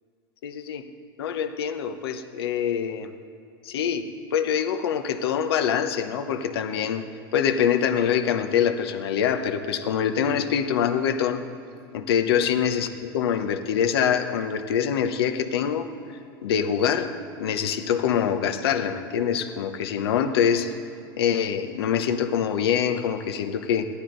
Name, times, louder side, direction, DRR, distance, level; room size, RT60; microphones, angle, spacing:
voice 1, 0.4-0.8 1.2-3.1 3.6-7.0 7.3-11.4 11.9-15.9 16.4-17.1 17.4-20.8 21.2-23.9, left 8 dB, 85° left, 8 dB, 0.9 m, -24 dB
15.0 x 11.5 x 3.9 m, 2.6 s
supercardioid pair, 120°, 13 cm